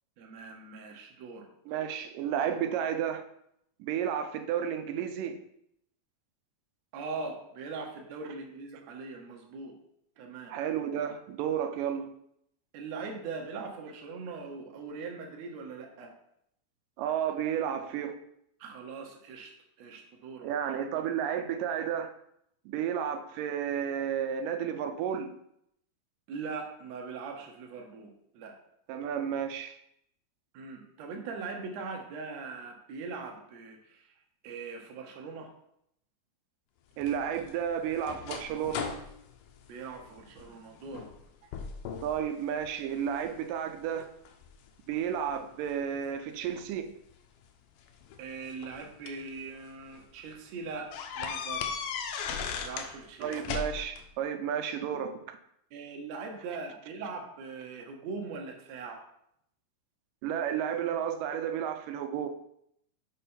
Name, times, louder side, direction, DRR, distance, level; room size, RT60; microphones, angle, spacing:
voice 1, 0.2-1.5 6.9-9.7 10.2-10.5 12.7-16.1 18.6-20.5 26.3-28.6 30.5-35.5 39.7-41.1 48.2-51.8 52.6-53.4 55.7-59.0, right 4 dB, 65° right, 2 dB, 2.0 m, -41 dB
voice 2, 1.7-3.2 3.8-5.4 10.5-12.1 17.0-18.2 20.4-22.1 22.7-25.4 28.9-29.8 37.0-38.9 42.0-44.1 44.9-46.9 53.2-55.4 60.2-62.3, right 8 dB, 85° right, 7 dB, 2.3 m, -32 dB
sound 1, 37.0-40.5 40.9-41.2 41.5-42.2 42.6-43.4 44.0-45.4 46.6-46.7 47.9-49.3 49.8-50.0 50.3-50.4 50.9-52.9 53.2-54.0, left 6 dB, 80° left, 2.2 m, -37 dB
6.5 x 5.4 x 4.3 m, 0.75 s
omnidirectional pair, 3.7 m